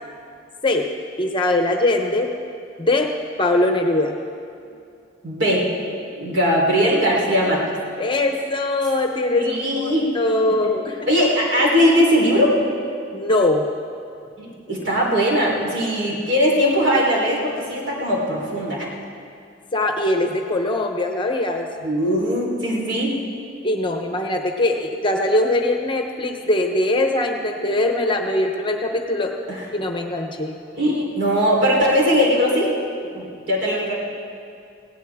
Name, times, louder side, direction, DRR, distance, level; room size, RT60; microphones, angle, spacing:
voice 1, 1.2-2.3 2.8-3.1 3.4-4.2 8.0-11.0 13.1-13.7 19.7-21.7 23.6-29.3 29.7-30.5, left 2 dB, 25° left, 4 dB, 0.9 m, -21 dB
voice 2, 5.2-5.7 6.1-7.6 9.4-10.1 11.1-12.6 14.4-18.9 21.8-23.1 29.5-29.6 30.7-32.7 33.1-33.9, equal, 60° right, -3 dB, 3.8 m, -20 dB
19.5 x 16.5 x 3.6 m, 2.4 s
head